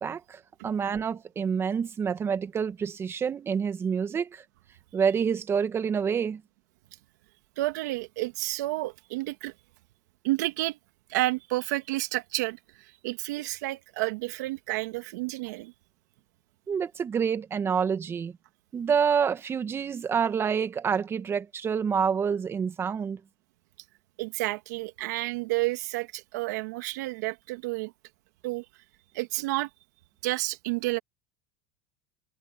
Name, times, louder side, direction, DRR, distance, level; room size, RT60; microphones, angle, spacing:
voice 1, 0.0-4.4 4.9-6.4 16.7-18.4 18.7-23.2, right 6 dB, 25° right, 1.5 m, -27 dB
voice 2, 7.6-9.5 10.2-10.8 11.1-15.7 24.2-27.9 28.4-28.7 29.1-29.7 30.2-31.0, right 19 dB, 85° right, 2.1 m, -30 dB
supercardioid pair, 125°, 9 cm